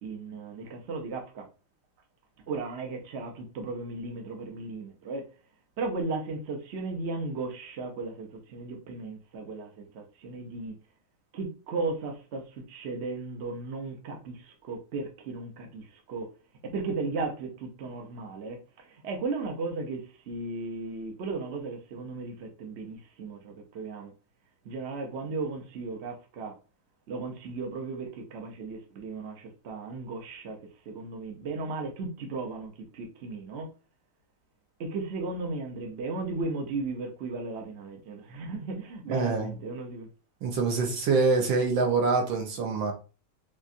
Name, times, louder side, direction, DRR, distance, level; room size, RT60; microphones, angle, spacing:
voice 1, 0.0-1.5 2.5-5.3 5.8-10.7 11.3-16.3 16.6-24.1 24.6-26.6 27.1-30.6 30.8-33.7 34.8-40.1, right 3 dB, 60° right, 0.7 m, -36 dB
voice 2, 39.1-39.5 40.4-42.9, right 4 dB, 75° right, 1.6 m, -25 dB
4.4 x 2.4 x 2.6 m
omnidirectional pair, 2.2 m